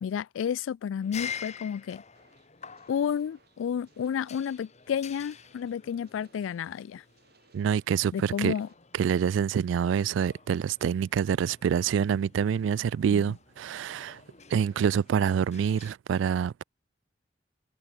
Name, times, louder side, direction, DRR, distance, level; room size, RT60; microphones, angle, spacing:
voice 1, 0.0-2.0 2.9-7.0 8.1-8.7 13.1-13.3, left 8 dB, 85° left, 0.3 m, -31 dB
sound 1, 1.0-15.9, left 7 dB, 35° left, 1.8 m, -47 dB
sound 2, 2.1-8.7, right 4 dB, 55° right, 6.4 m, -65 dB
voice 2, 7.5-8.5 8.9-14.2 14.5-16.6, right 7 dB, 80° right, 0.3 m, -26 dB
head